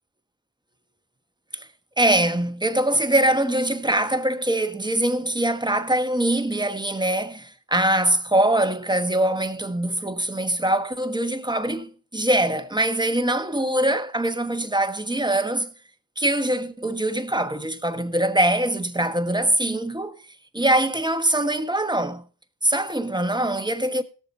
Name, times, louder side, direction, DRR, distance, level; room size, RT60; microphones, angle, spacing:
voice 1, 2.0-15.7 16.2-20.1 20.5-22.2 22.6-24.0, right 1 dB, 10° right, 1.3 m, -23 dB
17.0 x 7.0 x 4.2 m
cardioid pair, 40°, 45 cm